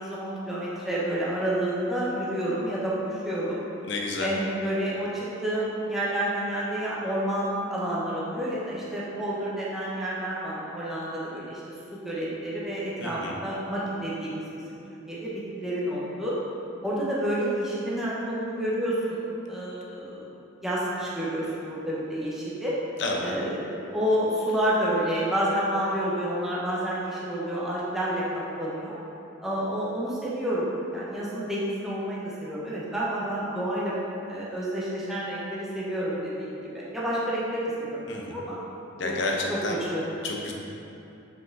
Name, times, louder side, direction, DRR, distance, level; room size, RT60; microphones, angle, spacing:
voice 1, 0.0-3.6 4.2-11.6 11.9-14.8 15.1-16.3 16.8-20.3 20.6-22.8 23.2-29.0 29.4-34.0 34.3-38.0 38.3-38.6 39.0-39.2 39.5-39.6 39.9-40.0, right 1 dB, ahead, -8 dB, 1.0 m, -29 dB
voice 2, 3.9-4.3 13.0-13.4 23.0-23.3 38.1-38.4 39.0-39.8 40.2-40.5, left 2 dB, 60° left, 0 dB, 0.8 m, -30 dB
5.5 x 4.9 x 3.9 m, 2.9 s
head